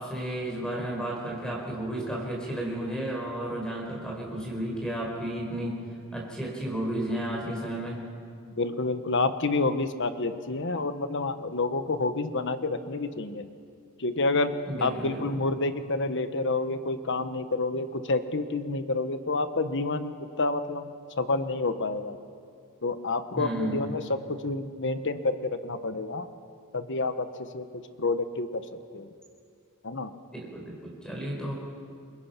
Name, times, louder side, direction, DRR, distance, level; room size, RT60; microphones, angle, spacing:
voice 1, 0.0-5.8 6.1-8.0 14.7-15.3 23.3-23.9 30.3-31.5, right 1 dB, 5° left, -2 dB, 4.8 m, -33 dB
voice 2, 8.6-13.5 14.0-14.5 14.8-22.2 22.8-26.3 26.7-27.7 28.0-28.6 28.9-29.1 29.8-30.1, left 3 dB, 55° left, 10 dB, 1.2 m, -29 dB
29.0 x 23.0 x 6.0 m, 2.3 s
head